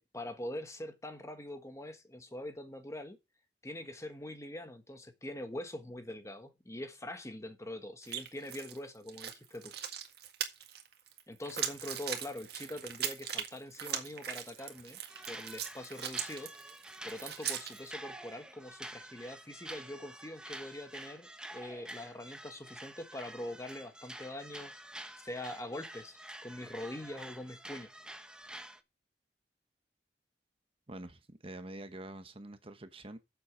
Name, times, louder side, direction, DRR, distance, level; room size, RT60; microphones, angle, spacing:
voice 1, 0.0-3.2 3.6-9.7 11.3-15.0 15.3-16.5 17.0-24.7 25.2-27.9, left 1 dB, 15° left, 1.3 m, -43 dB
sound 1, 8.0-8.8 9.1-17.9, right 9 dB, 65° right, 1.8 m, -39 dB
sound 2, 14.6-14.8 15.1-28.8, right 1 dB, 5° right, 0.9 m, -48 dB
voice 2, 30.9-33.2, right 1 dB, 30° right, 1.0 m, -46 dB
8.2 x 7.1 x 6.0 m
head